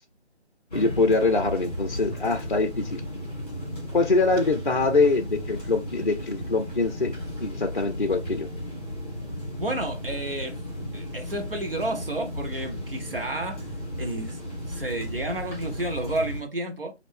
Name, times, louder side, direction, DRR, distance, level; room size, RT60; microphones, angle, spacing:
voice 1, 0.7-3.0 3.9-8.5, left 3 dB, 50° left, 0.4 m, -24 dB
sound 1, 0.7-16.4, equal, 10° left, 1.7 m, -35 dB
voice 2, 9.5-10.6 10.9-13.6 14.0-14.4 14.7-16.9, right 1 dB, 55° right, 0.9 m, -31 dB
5.0 x 2.6 x 3.4 m
figure-of-eight pair, 160°, 34 cm